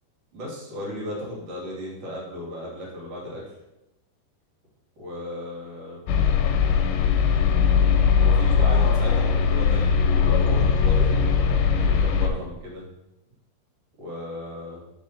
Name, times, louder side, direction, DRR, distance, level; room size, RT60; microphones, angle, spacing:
voice 1, 0.3-3.4 5.0-6.0 8.2-12.8 14.0-14.8, left 1 dB, 45° right, -4 dB, 2.4 m, -35 dB
sound 1, 6.1-12.3, left 6 dB, 85° left, 2.9 m, -20 dB
5.5 x 4.9 x 5.6 m, 0.94 s
omnidirectional pair, 5.0 m